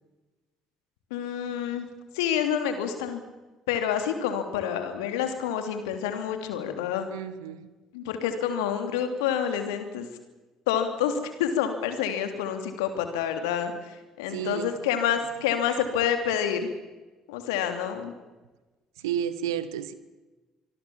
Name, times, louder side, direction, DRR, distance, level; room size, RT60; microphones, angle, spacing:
voice 1, 1.1-1.9 2.1-3.2 3.7-7.1 7.9-10.1 10.7-16.7 17.3-18.1, left 8 dB, 75° left, 7 dB, 3.3 m, -28 dB
voice 2, 7.1-7.7 14.3-14.7 19.0-19.9, right 9 dB, 80° right, 14 dB, 1.5 m, -31 dB
26.0 x 21.5 x 7.3 m, 1.2 s
hypercardioid pair, 50°, 2 cm